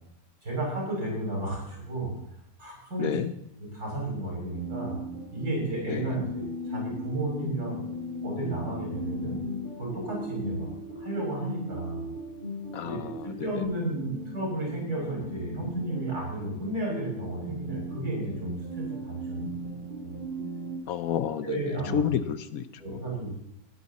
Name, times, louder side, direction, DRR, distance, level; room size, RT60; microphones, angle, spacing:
voice 1, 0.4-2.1 2.6-3.2 3.6-5.0 5.3-7.8 8.2-9.4 9.8-10.7 11.0-12.1 12.8-19.5 20.0-20.2 21.4-22.0 22.8-23.3, right 1 dB, 80° right, -3 dB, 7.1 m, -33 dB
voice 2, 3.0-3.3 5.9-6.1 12.7-13.5 20.9-23.0, left 8 dB, 70° left, 12 dB, 1.2 m, -31 dB
sound 1, 4.5-20.8, equal, 35° right, 3.1 m, -38 dB
19.0 x 10.5 x 4.2 m, 0.74 s
omnidirectional pair, 1.6 m